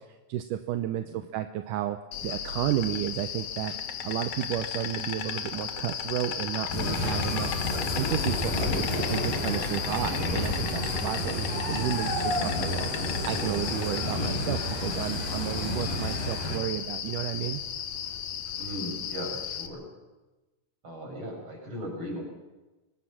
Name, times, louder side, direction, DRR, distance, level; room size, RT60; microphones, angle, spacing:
voice 1, 0.3-3.7 4.0-7.5 8.0-12.9 13.2-17.6, right 12 dB, 75° right, 8 dB, 2.2 m, -32 dB
Insect, 2.1-19.7, left 9 dB, 65° left, 2.3 m, -35 dB
sound 1, 6.7-16.6, left 1 dB, 80° left, 9.3 m, -31 dB
voice 2, 18.6-19.8 20.8-22.2, equal, 35° right, 0 dB, 7.2 m, -38 dB
24.0 x 19.0 x 5.9 m, 1.1 s
omnidirectional pair, 4.0 m